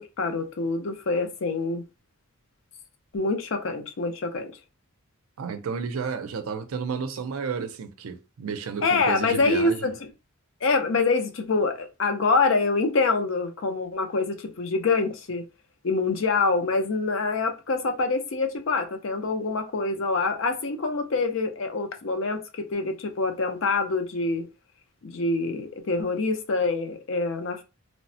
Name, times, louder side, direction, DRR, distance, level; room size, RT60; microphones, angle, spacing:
voice 1, 0.2-1.8 3.1-4.5 8.8-9.9 10.6-15.4 15.8-22.4 22.7-24.4 25.0-27.6, left 3 dB, 65° left, 0.5 m, -25 dB
voice 2, 5.4-9.9, right 5 dB, 85° right, 0.4 m, -32 dB
3.1 x 2.0 x 2.6 m
head